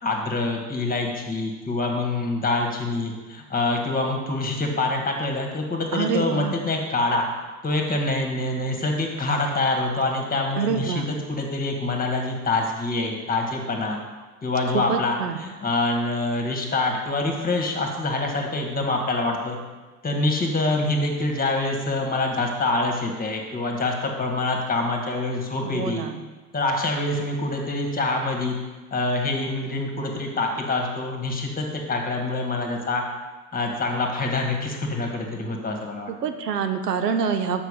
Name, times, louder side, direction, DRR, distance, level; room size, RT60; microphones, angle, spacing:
voice 1, 0.0-7.2 7.6-14.0 14.4-19.6 20.0-26.0 26.5-28.6 28.9-33.0 33.5-36.1, left 2 dB, 20° left, 2 dB, 1.6 m, -25 dB
voice 2, 5.9-6.5 10.6-11.1 14.7-15.4 25.6-26.2 36.1-37.6, right 6 dB, 90° right, 8 dB, 0.8 m, -26 dB
6.8 x 5.9 x 5.0 m, 1.3 s
hypercardioid pair, 80°, 46 cm